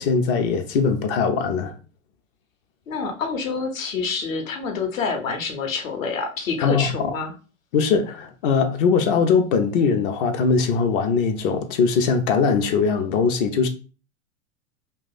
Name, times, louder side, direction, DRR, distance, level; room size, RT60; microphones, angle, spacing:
voice 1, 0.0-1.7 6.6-7.1 7.7-13.7, left 5 dB, 40° left, 0.6 m, -21 dB
voice 2, 2.9-7.3, left 5 dB, 70° left, 1.0 m, -27 dB
2.9 x 2.4 x 4.0 m
hypercardioid pair, 100°, 41 cm